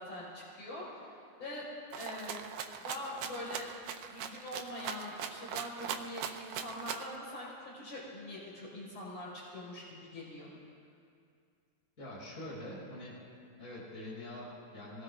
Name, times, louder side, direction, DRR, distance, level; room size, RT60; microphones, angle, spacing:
voice 1, 0.0-1.7 1.9-2.4 2.8-3.7 4.1-10.5, left 1 dB, 45° left, -8 dB, 5.8 m, -43 dB
Rattle (instrument), 1.9-7.1, right 8 dB, 85° right, 2.5 m, -40 dB
voice 2, 12.0-13.2 13.6-15.0, left 1 dB, 25° left, -7 dB, 5.1 m, -44 dB
27.0 x 18.5 x 2.6 m, 2.3 s
omnidirectional pair, 4.0 m